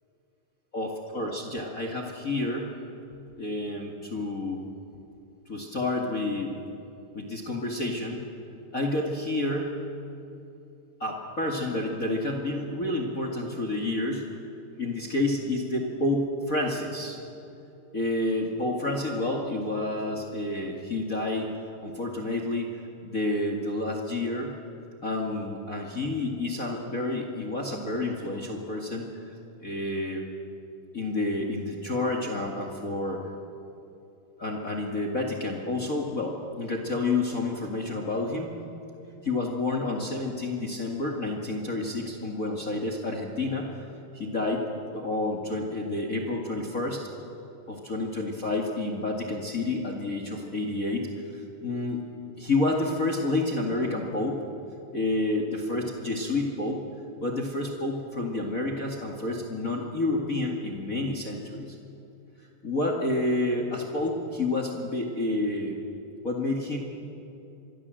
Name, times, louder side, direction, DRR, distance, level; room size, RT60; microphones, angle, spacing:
voice 1, 0.7-2.7 3.4-4.6 5.5-6.6 7.1-8.2 8.7-9.8 11.0-14.3 14.8-17.2 17.9-21.5 21.8-24.6 25.0-29.3 29.6-30.2 30.9-33.2 34.4-38.6 39.2-43.8 44.1-47.1 47.7-51.1 51.6-52.0 52.4-54.4 54.9-56.9 57.2-61.7 62.6-65.8 66.2-66.8, left 2 dB, 30° left, 1 dB, 2.0 m, -29 dB
26.5 x 22.0 x 7.7 m, 2.8 s
omnidirectional pair, 3.7 m